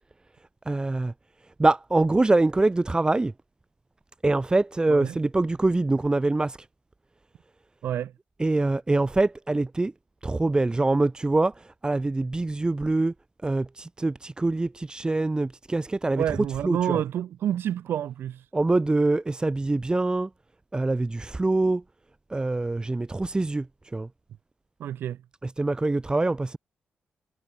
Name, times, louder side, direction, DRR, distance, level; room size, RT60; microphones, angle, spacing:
voice 1, 0.7-1.1 1.6-3.3 4.2-6.6 8.4-9.9 10.2-11.5 11.8-13.1 13.4-16.2 16.6-17.0 18.5-20.3 20.7-21.8 22.3-23.6 23.9-24.1 25.4-26.6, right 2 dB, 25° right, 3.3 m, -24 dB
voice 2, 16.1-18.4 24.8-25.2, right 10 dB, 90° right, 7.1 m, -28 dB
cardioid pair, 75°, 4 cm